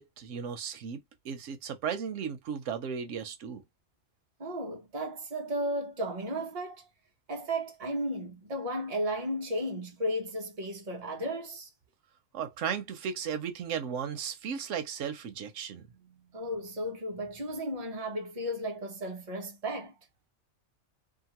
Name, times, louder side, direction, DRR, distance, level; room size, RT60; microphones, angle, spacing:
voice 1, 0.0-3.6 12.3-15.9, right 7 dB, 90° right, 1.0 m, -35 dB
voice 2, 4.4-6.9 7.3-11.7 16.3-20.0, equal, 35° right, 0.9 m, -34 dB
2.9 x 2.4 x 2.9 m
omnidirectional pair, 1.2 m